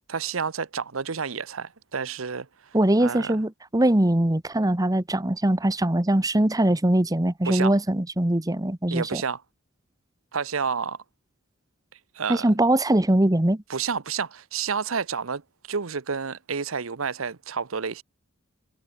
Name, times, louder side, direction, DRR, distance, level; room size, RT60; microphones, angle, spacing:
voice 1, 0.1-3.4 7.4-7.7 8.9-9.4 10.3-11.0 12.1-12.5 13.7-15.4 15.7-18.0, right 6 dB, 90° right, 0.9 m, -30 dB
voice 2, 2.7-9.2 12.3-13.6, right 1 dB, 20° right, 1.1 m, -22 dB
head